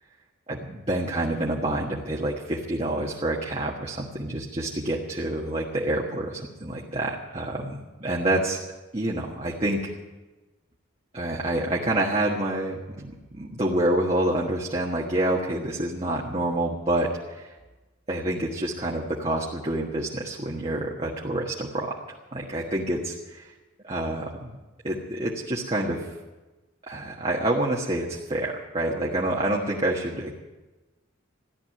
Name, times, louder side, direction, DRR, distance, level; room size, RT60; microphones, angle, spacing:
voice 1, 0.5-8.6 8.9-10.0 11.1-17.5 18.1-23.5 23.8-24.5 24.8-26.1 26.9-30.3, right 1 dB, 30° right, -3 dB, 1.4 m, -27 dB
15.0 x 12.0 x 7.7 m, 1.1 s
head